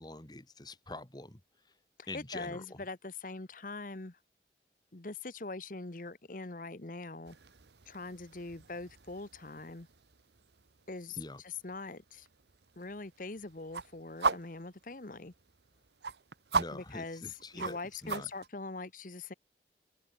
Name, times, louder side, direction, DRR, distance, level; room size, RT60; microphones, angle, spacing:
voice 1, 0.0-1.4 2.1-2.8 11.2-11.4 16.5-18.3, left 2 dB, 25° left, 2.1 m, -45 dB
voice 2, 2.0-4.2 4.9-7.4 7.9-9.9 10.9-11.2 11.4-12.3 12.8-15.3 16.7-17.2 17.5-19.3, left 3 dB, 50° left, 1.1 m, -42 dB
sound 1, 7.2-18.5, right 4 dB, 70° right, 1.1 m, -40 dB
open air
head